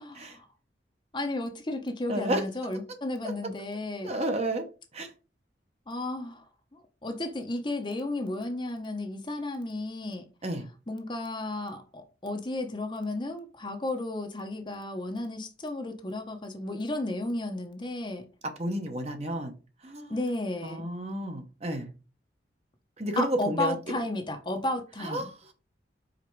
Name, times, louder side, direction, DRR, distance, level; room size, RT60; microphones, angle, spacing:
voice 1, 0.1-0.5 1.1-4.1 5.9-6.4 6.7-10.3 10.9-18.2 20.1-20.8 23.2-25.3, left 2 dB, 25° left, 0.9 m, -33 dB
voice 2, 2.1-2.4 4.0-4.7 4.9-5.1 10.4-10.7 18.6-19.5 19.8-20.3 20.6-21.9 23.0-24.0 25.0-25.5, right 1 dB, 35° right, 1.0 m, -31 dB
5.1 x 4.5 x 4.6 m
head